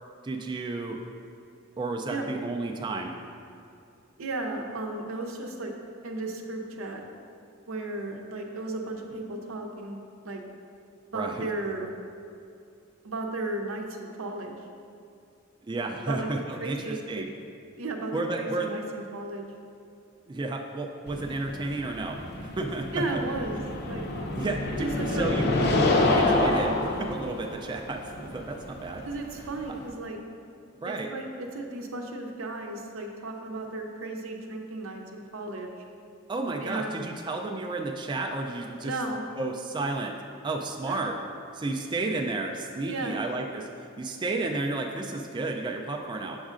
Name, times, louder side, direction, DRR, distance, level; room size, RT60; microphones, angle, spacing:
voice 1, 0.2-1.0 1.8-3.1 11.1-11.4 15.7-17.3 18.1-18.7 20.3-23.0 24.3-25.5 26.0-29.0 30.8-31.1 36.3-38.9 39.4-40.1 40.4-41.2 41.5-43.7 44.0-46.4, right 2 dB, 20° right, 2 dB, 0.3 m, -32 dB
voice 2, 4.2-5.7 6.0-7.0 7.7-10.0 10.2-10.4 11.1-11.9 13.0-14.6 16.0-17.3 17.8-19.5 22.9-24.0 24.8-25.3 26.2-26.4 29.0-30.2 30.9-35.7 36.6-37.0 38.8-39.2 40.9-41.0 42.8-43.2, right 2 dB, 80° right, 2 dB, 0.6 m, -34 dB
sound 1, 21.1-29.9, left 2 dB, 50° left, 0.6 m, -27 dB
7.0 x 6.3 x 2.5 m, 2.5 s
head